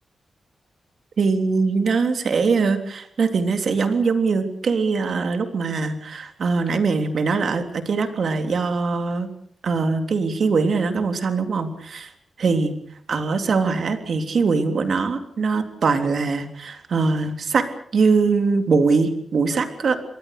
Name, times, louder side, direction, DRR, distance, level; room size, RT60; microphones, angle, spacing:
voice 1, 1.2-9.3 9.6-12.1 12.4-12.7 13.1-17.7 17.9-20.0, right 4 dB, 65° right, 7 dB, 3.4 m, -22 dB
28.0 x 22.5 x 6.8 m, 0.62 s
wide cardioid pair, 115°, 0 cm